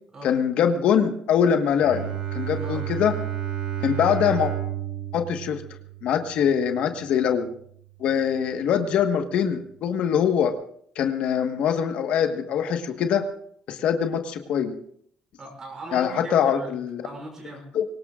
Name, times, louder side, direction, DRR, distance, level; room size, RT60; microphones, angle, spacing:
voice 1, 0.2-2.0 2.3-3.1 3.8-4.5 5.1-5.6 6.0-7.5 8.0-10.5 10.9-13.2 13.7-14.7 15.9-17.0 17.7-17.8, left 8 dB, 65° left, 6 dB, 1.4 m, -23 dB
Bowed string instrument, 1.8-7.5, right 11 dB, 60° right, 5.8 m, -32 dB
voice 2, 15.4-16.8 17.0-17.7, right 2 dB, 30° right, 2 dB, 6.1 m, -39 dB
24.0 x 18.5 x 2.5 m, 0.64 s
cardioid pair, 150°, 2 cm